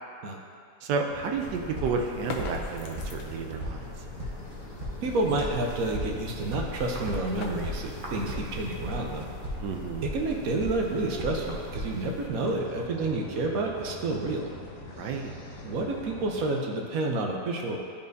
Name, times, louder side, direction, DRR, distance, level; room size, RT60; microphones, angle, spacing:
voice 1, 0.8-3.9 9.6-10.0 15.0-15.3, right 5 dB, 85° right, 3 dB, 1.2 m, -31 dB
sound 1, 1.0-16.4, left 1 dB, 60° left, 1.3 m, -44 dB
sound 2, 1.4-12.3, left 1 dB, 35° right, 0.9 m, -38 dB
sound 3, 2.1-3.7 6.4-9.4, left 4 dB, 80° left, 1.3 m, -42 dB
voice 2, 5.0-9.3 10.0-14.5 15.6-17.8, right 2 dB, 65° right, 1 dB, 1.1 m, -29 dB
11.5 x 4.3 x 2.6 m, 2.3 s
omnidirectional pair, 1.8 m